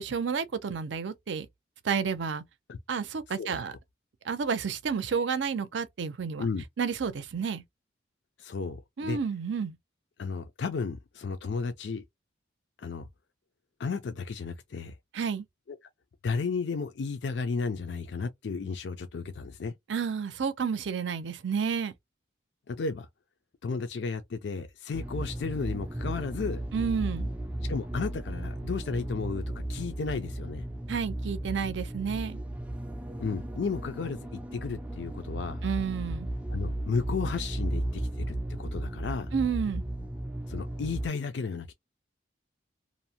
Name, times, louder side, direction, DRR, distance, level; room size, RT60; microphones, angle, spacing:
voice 1, 0.0-1.5 1.8-2.4 2.9-3.7 4.2-6.5 6.8-7.6 9.0-9.8 15.1-15.4 19.9-21.9 26.7-27.3 30.9-32.4 35.6-36.3 39.3-39.8, right 6 dB, 70° right, 0.5 m, -30 dB
voice 2, 8.4-9.2 10.2-12.0 12.8-13.1 13.8-15.0 16.2-19.7 22.7-23.1 23.6-26.6 27.6-29.4 29.7-30.6 33.2-35.6 36.5-39.3 40.5-41.7, left 4 dB, 65° left, 0.4 m, -33 dB
sound 1, 24.9-41.1, right 1 dB, 5° right, 0.3 m, -35 dB
2.6 x 2.1 x 2.7 m
head